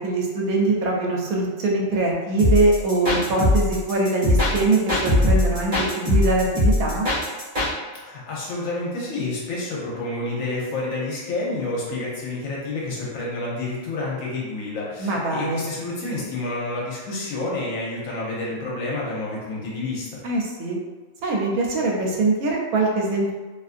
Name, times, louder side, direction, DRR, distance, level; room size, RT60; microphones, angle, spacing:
voice 1, 0.0-7.1 15.0-15.6 20.2-20.8 21.2-23.3, right 2 dB, 80° right, -1 dB, 1.0 m, -22 dB
sound 1, 2.4-7.7, left 1 dB, 35° right, 1.0 m, -21 dB
voice 2, 7.9-20.2, left 2 dB, 70° left, -5 dB, 1.1 m, -29 dB
2.6 x 2.5 x 2.5 m, 1.3 s
omnidirectional pair, 1.5 m